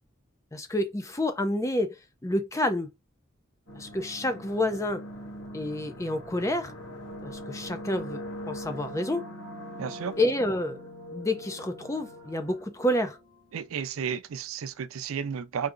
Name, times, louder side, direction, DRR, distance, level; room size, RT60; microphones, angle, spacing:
voice 1, 0.5-2.0 2.2-2.9 3.8-5.0 5.5-6.7 7.2-9.3 10.2-10.8 11.1-13.2, left 1 dB, 15° left, 0.4 m, -29 dB
sound 1, 3.7-13.4, equal, 80° left, 1.6 m, -42 dB
voice 2, 9.8-10.2 13.5-15.7, right 7 dB, 80° right, 0.4 m, -33 dB
4.7 x 2.7 x 2.5 m
head